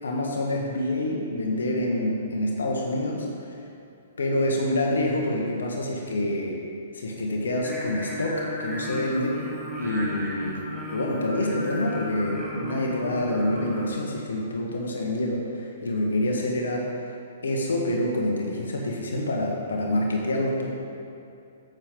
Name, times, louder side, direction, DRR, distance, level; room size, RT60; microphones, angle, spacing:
voice 1, 0.0-3.6 4.2-6.6 6.9-9.4 9.8-10.6 10.9-17.0 17.4-20.7, left 1 dB, 85° left, 0 dB, 1.6 m, -27 dB
Singing, 7.6-13.9, equal, 5° right, 2.0 m, -35 dB
15.5 x 6.7 x 3.8 m, 2.5 s
hypercardioid pair, 130°, 0 cm